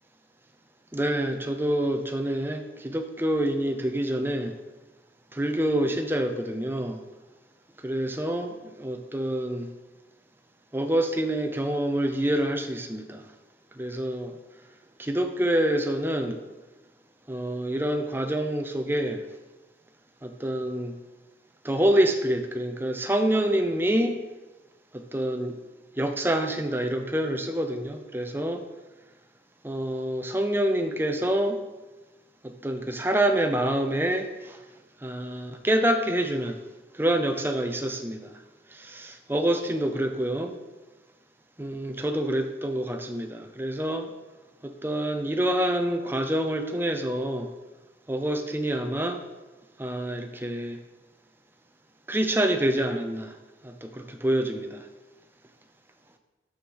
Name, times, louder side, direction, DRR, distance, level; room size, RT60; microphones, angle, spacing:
voice 1, 0.9-4.5 5.3-7.0 7.8-9.7 10.7-13.2 13.8-14.4 15.0-16.4 17.3-19.2 20.2-20.9 21.6-24.2 24.9-25.6 26.0-28.6 29.6-31.6 32.4-34.6 35.0-36.6 36.9-38.3 38.7-40.5 41.6-44.1 44.6-47.5 48.1-49.2 49.8-50.8 52.1-53.3 53.6-54.8, right 1 dB, 10° right, 6 dB, 0.6 m, -27 dB
6.5 x 6.4 x 6.3 m, 1.2 s
head